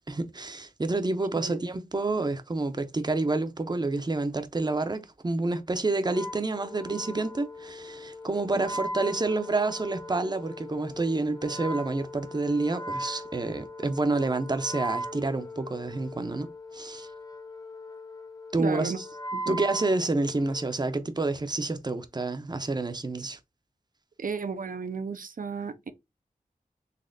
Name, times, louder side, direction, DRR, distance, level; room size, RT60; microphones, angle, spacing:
voice 1, 0.1-16.5 16.7-17.1 18.5-19.0 19.5-23.4, right 2 dB, 30° right, 0.6 m, -28 dB
Wind instrument woodwind instrument, 6.0-20.7, equal, 25° left, 0.7 m, -39 dB
voice 2, 18.6-19.0 19.3-19.6 24.2-25.9, right 5 dB, 65° right, 0.5 m, -34 dB
4.1 x 2.8 x 2.6 m
wide cardioid pair, 50°, 15 cm